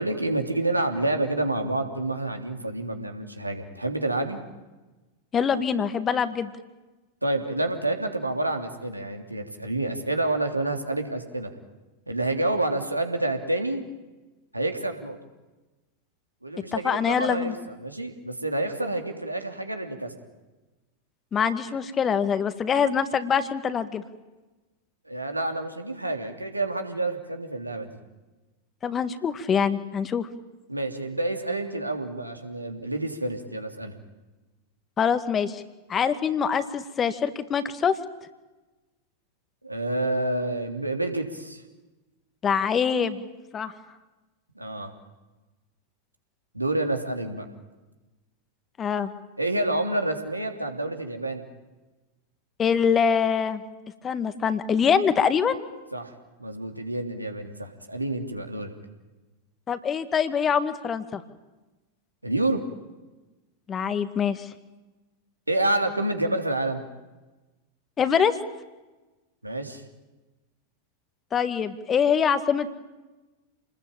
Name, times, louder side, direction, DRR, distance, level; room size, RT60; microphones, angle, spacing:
voice 1, 0.0-4.4 7.2-11.5 12.1-13.8 14.5-15.2 16.4-20.1 25.0-27.9 30.7-33.9 39.6-41.6 44.5-44.9 46.5-47.5 49.4-51.4 55.9-56.1 56.4-58.7 62.2-62.6 65.5-66.8 69.4-69.8, right 2 dB, 85° right, 5 dB, 3.2 m, -28 dB
voice 2, 5.3-6.5 16.7-17.5 21.3-24.0 28.8-30.3 35.0-35.6 35.9-38.0 42.4-43.3 43.5-43.7 48.8-49.1 52.6-53.6 54.0-55.6 59.7-61.2 63.7-64.5 68.0-68.4 71.3-72.8, left 7 dB, 25° left, 11 dB, 2.0 m, -24 dB
29.0 x 20.5 x 9.0 m, 1.1 s
figure-of-eight pair, 90°, 0 cm